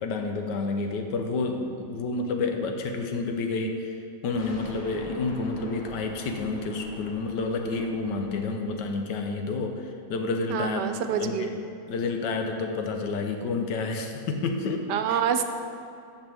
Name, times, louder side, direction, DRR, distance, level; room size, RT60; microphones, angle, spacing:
voice 1, 0.0-3.9 4.2-10.9 11.2-11.6 11.9-15.2, left 3 dB, 90° left, 4 dB, 1.4 m, -29 dB
sound 1, 4.3-9.2, equal, 65° left, 2.8 m, -45 dB
voice 2, 10.5-11.5 14.9-15.4, right 8 dB, 80° right, 8 dB, 1.2 m, -26 dB
14.0 x 6.0 x 3.4 m, 2.5 s
omnidirectional pair, 1.8 m